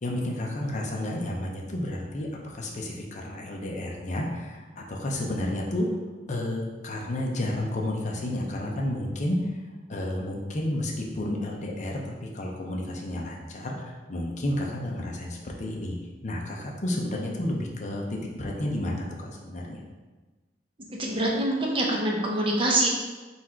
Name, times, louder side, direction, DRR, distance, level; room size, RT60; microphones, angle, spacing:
voice 1, 0.0-5.9 6.3-9.5 9.9-15.9 16.2-19.8, left 1 dB, 45° left, 0 dB, 0.6 m, -31 dB
voice 2, 21.0-22.9, right 1 dB, 30° right, -1 dB, 0.7 m, -25 dB
4.1 x 2.4 x 4.3 m, 1.2 s
head